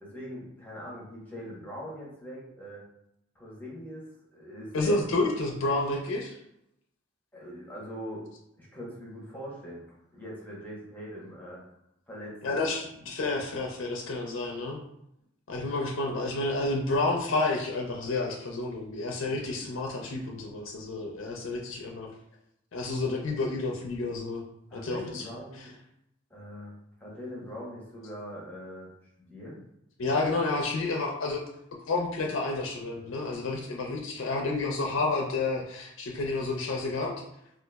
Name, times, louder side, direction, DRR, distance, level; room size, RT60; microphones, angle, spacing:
voice 1, 0.0-2.8 3.3-5.1 7.3-8.2 8.6-11.6 12.1-12.7 19.2-19.6 24.7-25.7 26.3-26.7 27.0-28.9 29.3-29.6, equal, 10° left, -6 dB, 0.9 m, -42 dB
voice 2, 4.7-6.4 12.4-14.8 15.5-22.1 22.7-24.4 24.7-25.2 30.0-31.4 31.9-37.1, left 2 dB, 80° left, 0 dB, 0.5 m, -30 dB
3.8 x 2.4 x 2.2 m, 0.79 s
head